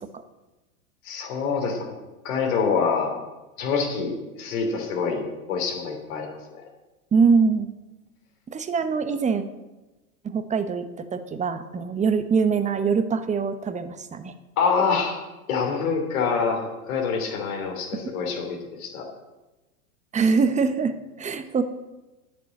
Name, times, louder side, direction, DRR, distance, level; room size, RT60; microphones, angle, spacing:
voice 1, 1.0-2.0 2.2-3.1 3.6-6.4 14.6-15.2 15.5-19.1, left 5 dB, 65° left, 2 dB, 3.1 m, -26 dB
voice 2, 7.1-7.7 8.5-9.4 10.2-14.3 20.1-21.6, right 5 dB, 15° right, 10 dB, 0.9 m, -23 dB
9.4 x 7.0 x 9.0 m, 1.1 s
hypercardioid pair, 105°, 44 cm